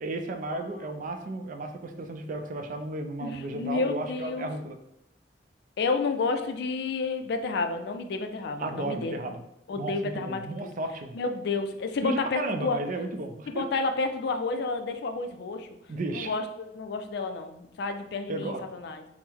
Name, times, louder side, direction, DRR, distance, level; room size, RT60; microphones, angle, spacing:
voice 1, 0.0-4.8 8.6-9.4 9.8-11.2 12.0-13.7 15.9-16.4 18.3-18.6, right 2 dB, 45° right, 6 dB, 0.4 m, -33 dB
voice 2, 3.2-4.5 5.8-9.2 9.7-10.7 11.1-12.8 13.5-15.7 16.1-19.0, left 4 dB, 65° left, 7 dB, 0.4 m, -30 dB
3.6 x 2.0 x 4.3 m, 0.81 s
head